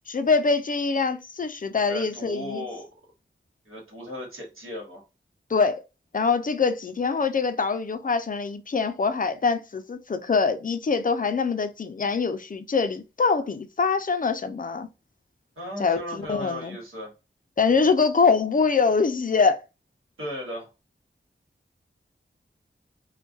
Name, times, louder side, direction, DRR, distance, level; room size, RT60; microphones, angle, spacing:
voice 1, 0.1-2.6 5.5-5.8 6.1-14.9 15.8-16.8 17.6-19.6, left 5 dB, 40° left, 0.4 m, -24 dB
voice 2, 1.7-2.9 3.6-5.0 15.6-17.1 20.2-20.7, equal, 85° right, 1.2 m, -36 dB
2.3 x 2.2 x 2.5 m
wide cardioid pair, 60°, 21 cm